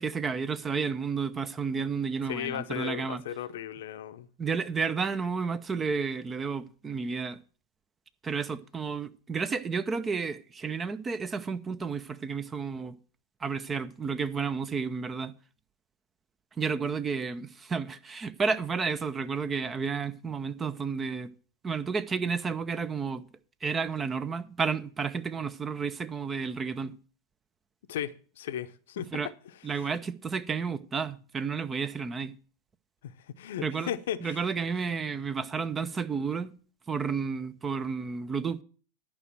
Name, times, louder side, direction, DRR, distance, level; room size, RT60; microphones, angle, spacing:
voice 1, 0.0-3.2 4.4-7.4 8.2-13.0 13.4-15.3 16.6-21.3 21.6-23.2 23.6-26.9 29.1-29.3 29.6-32.3 33.6-33.9 34.2-36.5 36.9-38.6, right 5 dB, 20° right, 0.6 m, -31 dB
voice 2, 2.3-4.3 27.9-29.1 29.7-29.9 33.0-34.4, left 10 dB, 65° left, 0.7 m, -36 dB
11.0 x 5.0 x 7.5 m
figure-of-eight pair, 90°, 0 cm